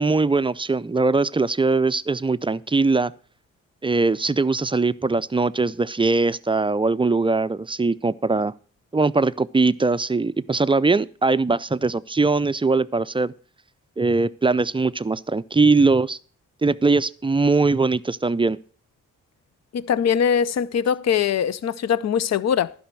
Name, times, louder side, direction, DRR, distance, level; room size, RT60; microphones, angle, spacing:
voice 1, 0.0-3.1 3.8-8.5 8.9-13.3 14.0-16.2 16.6-18.6, right 3 dB, 15° right, 0.4 m, -21 dB
voice 2, 19.7-22.7, left 8 dB, 50° left, 0.6 m, -22 dB
11.5 x 5.4 x 7.5 m
supercardioid pair, 45°, 33 cm